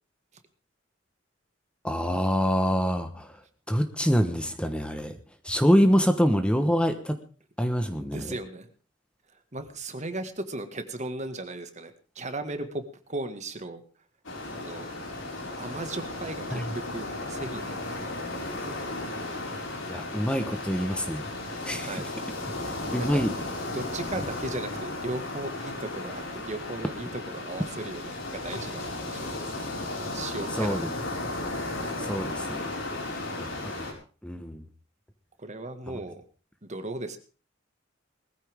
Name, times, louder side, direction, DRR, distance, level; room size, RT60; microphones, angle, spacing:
voice 1, 1.8-3.3 3.7-5.1 5.4-7.2 7.6-8.3 16.5-16.7 19.9-21.3 21.6-22.0 22.9-23.3 30.6-30.9 32.0-32.7 33.4-33.9 34.2-34.6 35.9-36.0, equal, 5° left, 8 dB, 1.2 m, -25 dB
voice 2, 7.9-8.7 9.5-12.8 13.1-13.8 14.5-14.9 15.6-18.1 21.8-22.1 23.0-23.3 23.7-29.7 30.1-31.0 35.4-36.2 36.6-37.2, right 2 dB, 35° right, 8 dB, 1.8 m, -36 dB
sound 1, 14.2-33.9, left 2 dB, 75° left, 5.2 m, -35 dB
20.0 x 14.5 x 3.6 m, 0.37 s
head